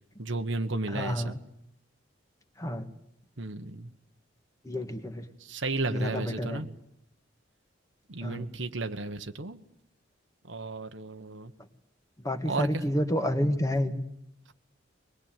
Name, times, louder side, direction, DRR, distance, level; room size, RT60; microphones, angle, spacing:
voice 1, 0.2-1.4 3.4-3.9 5.4-6.7 8.1-9.6 10.5-11.5 12.4-12.8, right 2 dB, 80° right, 6 dB, 1.4 m, -33 dB
voice 2, 0.9-1.4 2.6-2.9 4.7-5.2 5.9-6.6 8.2-8.5 12.2-14.0, equal, 20° left, 7 dB, 1.7 m, -29 dB
24.0 x 20.0 x 9.2 m, 0.80 s
head